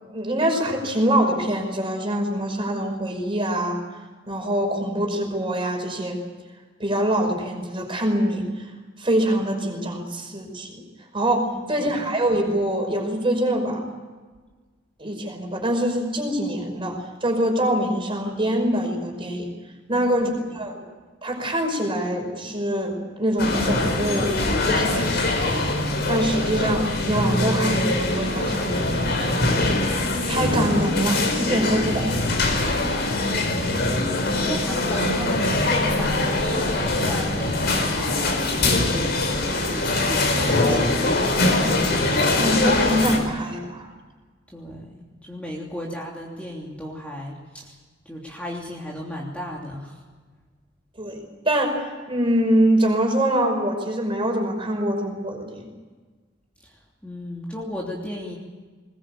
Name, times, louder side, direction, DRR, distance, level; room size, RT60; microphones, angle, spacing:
voice 1, 0.0-3.8 4.3-6.2 6.8-8.7 9.0-10.8 11.1-13.8 15.0-19.5 19.9-20.8 21.2-29.5 30.0-32.5 42.4-43.9 51.0-51.2 51.4-51.8 52.1-55.7, right 1 dB, 25° right, 3 dB, 5.5 m, -24 dB
voice 2, 11.5-12.0 19.9-20.7 33.3-39.2 39.5-41.7 44.5-47.8 48.0-50.0 56.6-58.4, equal, 5° left, -3 dB, 3.0 m, -35 dB
sound 1, 23.4-43.2, left 2 dB, 55° left, 4.7 m, -23 dB
21.0 x 21.0 x 8.7 m, 1.4 s
head